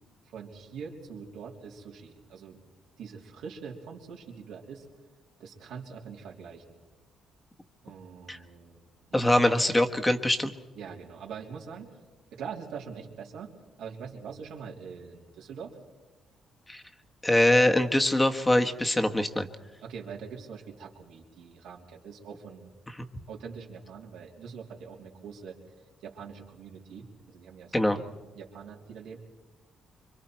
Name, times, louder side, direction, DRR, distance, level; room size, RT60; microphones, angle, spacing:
voice 1, 0.2-2.6 3.0-4.9 5.4-6.8 7.8-9.3 10.7-12.0 12.3-15.8 19.8-22.7 23.3-25.6 26.0-29.2, right 6 dB, 85° right, -1 dB, 3.2 m, -43 dB
voice 2, 9.1-10.5 16.7-16.8 17.2-19.5 23.0-23.1 27.7-28.0, left 1 dB, 10° left, 5 dB, 1.3 m, -23 dB
26.0 x 24.0 x 4.5 m, 1.2 s
cardioid pair, 90°, 0 cm